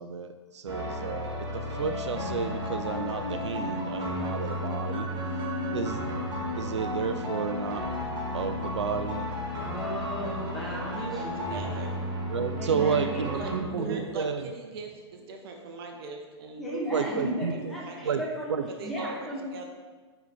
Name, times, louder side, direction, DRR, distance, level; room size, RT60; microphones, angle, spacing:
voice 1, 0.0-5.1 5.7-6.0 6.6-7.8 8.3-9.3 12.3-14.4 16.9-17.7 18.1-18.2 18.5-18.6, right 6 dB, 80° right, 9 dB, 0.4 m, -31 dB
sound 1, 0.7-13.6, right 1 dB, 30° right, 1.5 m, -34 dB
sound 2, 1.8-14.0, left 9 dB, 70° left, 0.4 m, -39 dB
voice 2, 9.5-11.7 12.6-14.2 16.6-18.6 18.8-19.5, right 1 dB, ahead, -6 dB, 1.9 m, -35 dB
voice 3, 10.9-12.0 13.3-17.0 17.2-17.3 17.8-18.2 18.8-19.7, right 3 dB, 55° right, 3 dB, 0.9 m, -41 dB
9.3 x 4.0 x 3.5 m, 1.4 s
hypercardioid pair, 105°, 15 cm